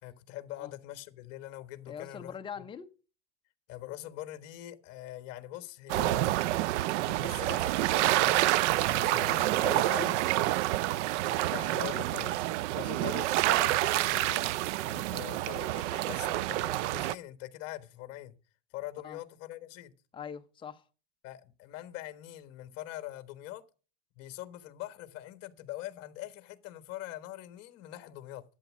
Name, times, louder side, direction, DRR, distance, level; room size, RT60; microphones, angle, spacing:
voice 1, 0.0-2.4 3.7-6.3 7.0-8.5 8.9-10.3 11.2-12.4 12.7-14.4 15.1-18.3 18.7-19.9 21.2-23.6 24.2-28.4, left 14 dB, 40° left, 1.4 m, -43 dB
voice 2, 1.9-2.9 9.6-10.2 14.9-15.1 19.0-19.2 20.1-20.8, left 7 dB, 15° left, 0.7 m, -42 dB
sound 1, 5.9-17.1, right 16 dB, 70° right, 0.5 m, -28 dB
12.0 x 8.4 x 6.2 m
supercardioid pair, 150°, 37 cm